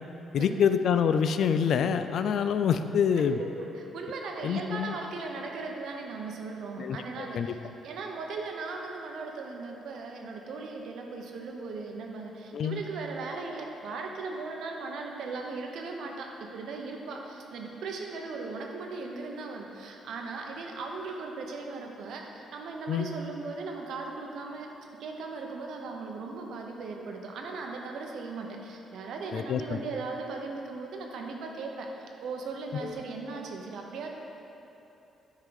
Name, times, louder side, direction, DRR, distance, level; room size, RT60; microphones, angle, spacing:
voice 1, 0.3-3.4 4.4-5.0 6.8-7.5 12.5-12.8 22.9-23.1 29.3-29.6 32.8-32.9, left 7 dB, 65° left, 10 dB, 0.3 m, -26 dB
voice 2, 3.2-7.6 7.8-24.7 25.0-31.9 32.2-34.1, right 3 dB, 75° right, 2 dB, 0.8 m, -38 dB
9.4 x 3.8 x 4.9 m, 3.0 s
cardioid pair, 90°, 0 cm